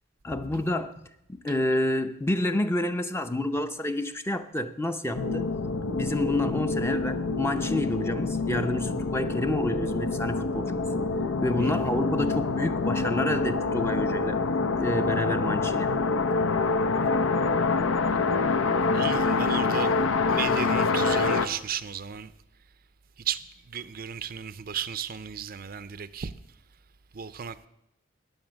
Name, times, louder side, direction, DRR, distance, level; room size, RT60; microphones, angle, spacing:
voice 1, 0.2-0.9 1.3-5.5 5.9-10.9 11.4-14.4 14.8-15.9, left 1 dB, 10° left, 0.6 m, -29 dB
sound 1, 5.1-21.5, left 3 dB, 75° left, 0.7 m, -26 dB
voice 2, 18.9-20.0 20.3-22.3 23.2-26.3 27.1-27.7, right 8 dB, 45° right, 0.5 m, -34 dB
14.5 x 10.0 x 6.3 m
head